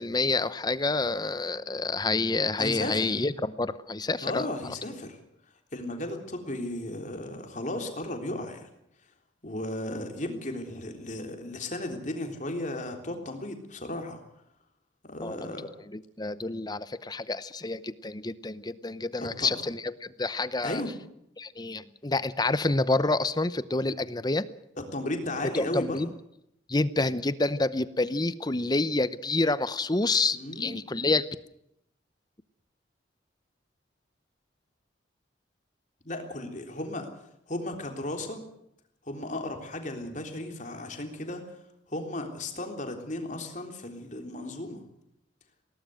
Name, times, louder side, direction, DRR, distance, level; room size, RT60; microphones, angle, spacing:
voice 1, 0.0-4.5 15.2-15.5 16.2-20.8 21.4-24.4 25.7-26.1 26.7-31.3, left 3 dB, 20° left, 15 dB, 0.8 m, -28 dB
voice 2, 2.6-3.2 4.2-5.2 5.7-8.7 9.4-14.2 15.0-15.7 19.2-19.5 20.6-20.9 24.9-26.1 30.3-30.7 36.0-37.1 37.5-38.4 39.1-41.4 41.9-44.8, left 1 dB, 40° left, 4 dB, 3.6 m, -35 dB
20.5 x 18.0 x 7.8 m, 0.78 s
head